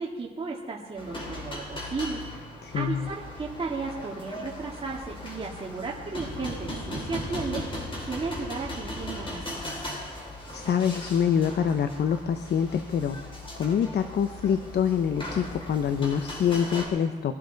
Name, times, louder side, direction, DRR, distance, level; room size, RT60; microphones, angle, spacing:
voice 1, 0.0-2.2 2.7-7.7 8.0-10.0, right 4 dB, 30° right, -3 dB, 1.9 m, -34 dB
sound 1, 1.0-16.9, left 1 dB, 25° left, 4.2 m, -38 dB
voice 2, 2.6-3.1 10.5-13.2 13.6-17.4, left 8 dB, 55° left, 9 dB, 0.8 m, -25 dB
23.0 x 11.5 x 4.0 m, 1.4 s
cardioid pair, 90°, 20 cm